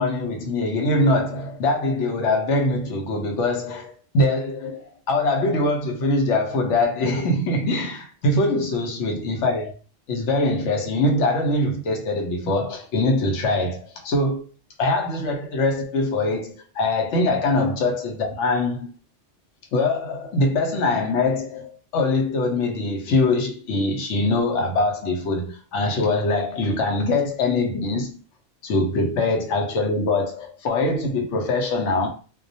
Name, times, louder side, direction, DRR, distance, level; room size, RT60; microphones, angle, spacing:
voice 1, 0.0-9.7 10.1-14.4 14.8-18.9 19.7-28.2 28.6-32.1, left 2 dB, 85° left, 1.0 m, -23 dB
2.3 x 2.1 x 2.6 m
omnidirectional pair, 1.2 m